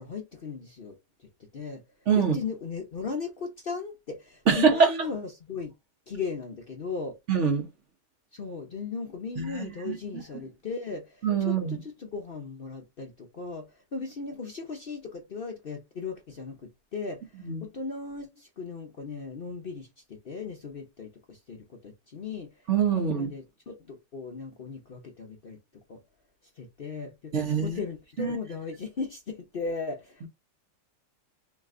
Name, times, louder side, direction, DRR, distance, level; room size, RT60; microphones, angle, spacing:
voice 1, 0.0-1.8 2.1-5.7 6.1-7.2 8.3-13.7 13.9-16.6 16.9-22.6 22.9-25.6 25.9-26.0 26.6-30.3, left 4 dB, 60° left, 0.6 m, -37 dB
voice 2, 4.5-4.9 7.3-7.7 9.4-10.0 10.3-10.4 11.2-11.8 17.4-17.7 22.7-23.3 27.3-27.8 28.2-28.4 30.2-30.3, right 6 dB, 50° right, 1.2 m, -24 dB
3.2 x 3.2 x 3.6 m
omnidirectional pair, 1.9 m